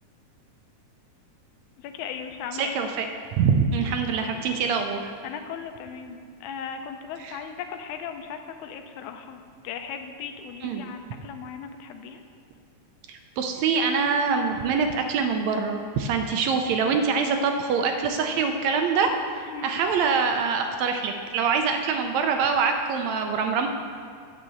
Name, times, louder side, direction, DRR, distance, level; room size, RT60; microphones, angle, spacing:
voice 1, 1.8-2.7 5.2-12.2 19.5-19.7, left 7 dB, 80° left, 6 dB, 2.0 m, -37 dB
voice 2, 2.5-3.1 3.4-5.1 7.2-7.4 10.6-10.9 13.1-23.7, right 5 dB, 80° right, 5 dB, 1.7 m, -25 dB
9.0 x 5.6 x 7.6 m, 2.2 s
omnidirectional pair, 3.5 m